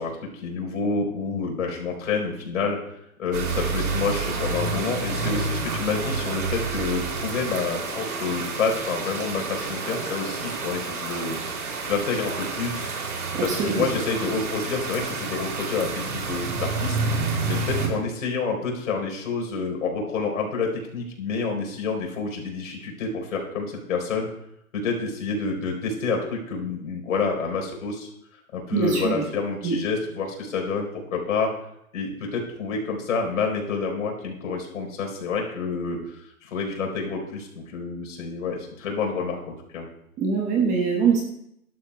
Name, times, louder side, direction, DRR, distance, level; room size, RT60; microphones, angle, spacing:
voice 1, 0.0-11.4 11.8-12.9 13.4-17.0 17.5-24.3 24.7-28.1 28.5-31.5 31.9-39.4 39.7-39.8, left 4 dB, 65° left, 1 dB, 4.4 m, -28 dB
sound 1, 3.3-17.9, right 4 dB, 80° right, 3.1 m, -29 dB
voice 2, 13.5-13.9 28.7-29.2 29.6-29.8 40.2-41.2, right 5 dB, 15° right, 0 dB, 1.2 m, -23 dB
18.0 x 12.0 x 2.3 m, 0.76 s
hypercardioid pair, 155°, 44 cm